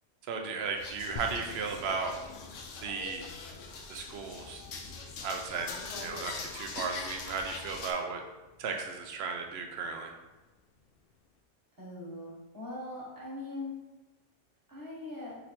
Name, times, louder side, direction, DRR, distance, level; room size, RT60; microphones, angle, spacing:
voice 1, 0.3-2.2 2.8-3.3 3.9-4.6 5.2-8.2 8.6-10.1, right 5 dB, 65° right, 3 dB, 0.8 m, -35 dB
sound 1, 0.8-7.9, left 4 dB, 80° left, 1.0 m, -43 dB
sound 2, 1.2-11.4, left 3 dB, 60° left, 0.7 m, -52 dB
voice 2, 11.8-13.7 14.7-15.3, left 2 dB, 15° right, -7 dB, 1.6 m, -41 dB
3.9 x 3.2 x 4.2 m, 1.1 s
omnidirectional pair, 1.3 m